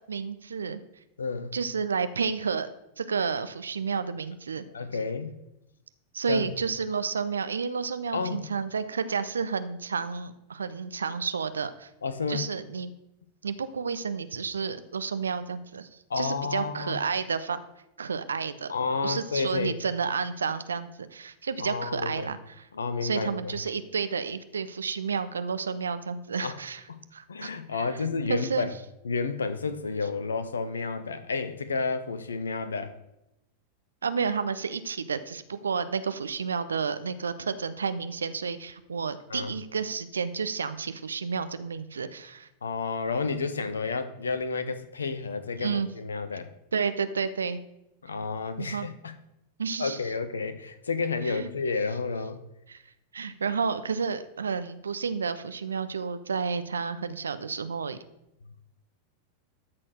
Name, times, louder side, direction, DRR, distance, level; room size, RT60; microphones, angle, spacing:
voice 1, 0.1-0.8 1.5-2.7 3.0-4.7 6.1-11.9 12.3-12.9 13.4-17.6 18.0-18.7 19.0-22.7 23.0-26.8 27.1-28.7 34.0-42.5 45.6-45.9 46.7-47.6 48.6-48.9 49.6-50.0 51.2-51.5 52.7-52.8 53.1-58.0, right 5 dB, 70° right, 12 dB, 0.6 m, -31 dB
voice 2, 1.2-1.5 4.7-5.4 6.3-6.5 8.1-8.5 12.0-12.5 16.1-17.0 18.7-19.7 21.6-22.3 22.7-23.6 26.4-26.6 27.3-28.7 29.0-33.0 39.3-39.5 42.6-46.5 48.0-49.1 49.8-52.4, left 4 dB, 70° left, 11 dB, 0.7 m, -31 dB
13.0 x 4.3 x 6.3 m, 0.87 s
figure-of-eight pair, 90°, 0 cm